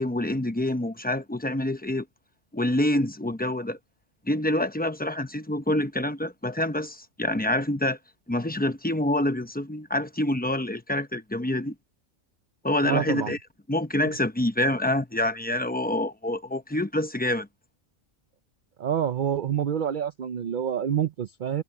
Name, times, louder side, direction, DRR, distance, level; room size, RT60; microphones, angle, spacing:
voice 1, 0.0-2.0 2.5-3.8 4.3-8.0 8.3-11.7 12.6-13.4 13.7-17.5, left 1 dB, 10° left, 0.7 m, -26 dB
voice 2, 12.8-13.3 14.1-14.2 18.8-21.6, right 9 dB, 55° right, 0.6 m, -27 dB
omnidirectional pair, 1.3 m